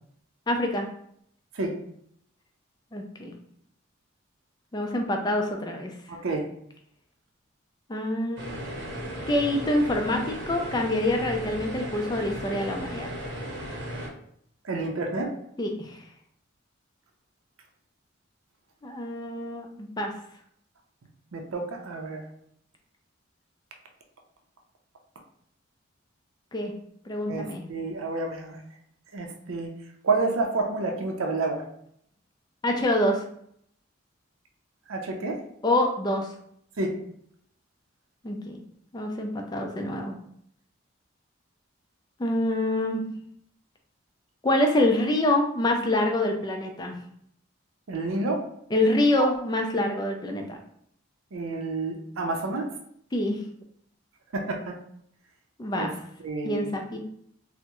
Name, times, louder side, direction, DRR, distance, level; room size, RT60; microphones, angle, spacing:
voice 1, 0.5-0.9 2.9-3.3 4.7-5.9 7.9-8.4 9.3-13.1 15.6-16.0 18.8-20.1 26.5-26.7 27.1-27.6 32.6-33.2 35.6-36.3 38.2-38.6 38.9-40.1 42.2-43.0 44.4-46.9 48.7-50.6 53.1-53.4 55.6-55.9 56.4-57.0, left 1 dB, 20° left, 3 dB, 0.3 m, -26 dB
voice 2, 6.1-6.5 14.6-15.3 21.3-22.2 27.3-28.6 29.1-29.7 30.0-31.6 34.9-35.4 36.8-36.9 47.9-48.4 49.2-49.3 51.3-52.7 54.3-54.8 55.7-55.9 56.2-56.7, right 3 dB, 85° right, 3 dB, 0.5 m, -29 dB
sound 1, 8.4-14.1, equal, 65° right, 0.9 m, -36 dB
3.4 x 2.0 x 2.9 m, 0.69 s
head